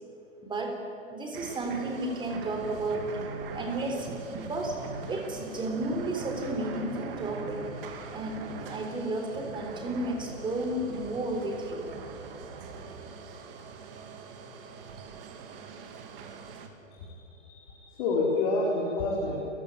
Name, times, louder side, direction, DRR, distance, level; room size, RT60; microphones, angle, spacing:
voice 1, 0.4-0.8 1.1-3.2 3.5-4.8 5.1-7.7 8.1-11.9, right 1 dB, 10° right, 3 dB, 3.7 m, -33 dB
sound 1, 1.3-16.7, right 5 dB, 45° right, 2.6 m, -42 dB
voice 2, 16.9-19.4, left 3 dB, 40° left, -3 dB, 4.1 m, -29 dB
28.5 x 15.0 x 8.8 m, 2.8 s
hypercardioid pair, 130°, 39 cm